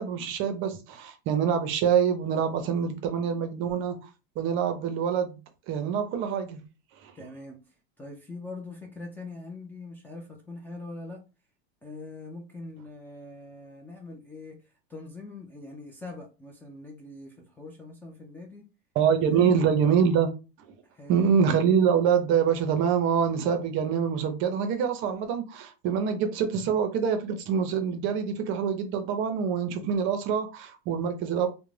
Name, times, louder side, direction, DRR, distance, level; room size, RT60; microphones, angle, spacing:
voice 1, 0.0-4.1 4.4-5.4 5.7-6.6 7.0-7.1 19.0-20.3 21.1-31.5, right 7 dB, 45° right, 0.5 m, -25 dB
voice 2, 7.1-11.2 11.8-18.6 19.2-19.6 20.8-21.2, left 2 dB, 5° left, 0.3 m, -43 dB
2.4 x 2.1 x 3.1 m
supercardioid pair, 135°, 29 cm